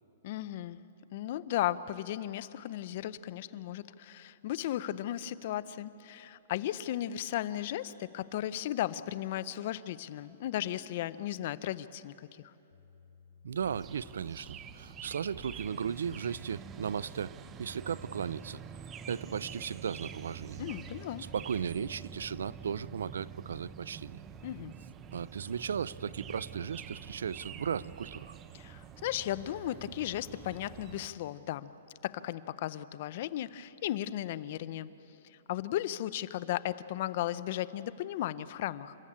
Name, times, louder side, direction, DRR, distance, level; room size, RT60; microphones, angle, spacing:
voice 1, 0.2-0.8 1.1-12.5 20.6-21.2 24.4-24.7 28.5-31.7 32.0-34.9 35.2-39.0, left 13 dB, 50° left, 15 dB, 0.6 m, -35 dB
sound 1, 12.7-17.6, left 6 dB, 90° left, 2.8 m, -58 dB
voice 2, 13.4-18.6 19.1-20.6 21.3-24.2 25.1-28.3, right 7 dB, 85° right, 21 dB, 0.5 m, -36 dB
sound 2, 13.6-31.1, right 7 dB, 20° right, 0.7 m, -47 dB
29.5 x 14.5 x 8.7 m, 3.0 s
hypercardioid pair, 155°, 0 cm